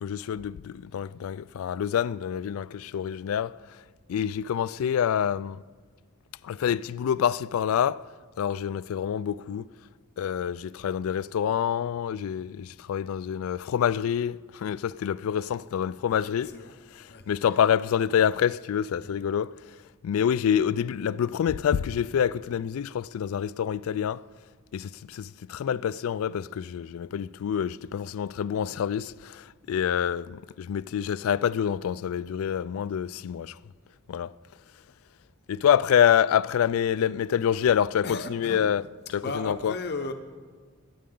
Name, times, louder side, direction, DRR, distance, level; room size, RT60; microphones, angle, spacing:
voice 1, 0.0-3.6 4.1-5.6 6.4-8.1 8.4-9.7 10.2-16.5 17.3-19.5 20.0-24.3 24.7-33.6 34.1-34.3 35.5-38.8 39.1-39.7, left 8 dB, 75° left, 0.3 m, -27 dB
voice 2, 16.4-16.8 17.1-17.6 19.0-19.1 37.7-37.8 38.0-38.7 39.2-40.1, left 3 dB, 50° left, 0.8 m, -36 dB
23.5 x 9.4 x 3.8 m
head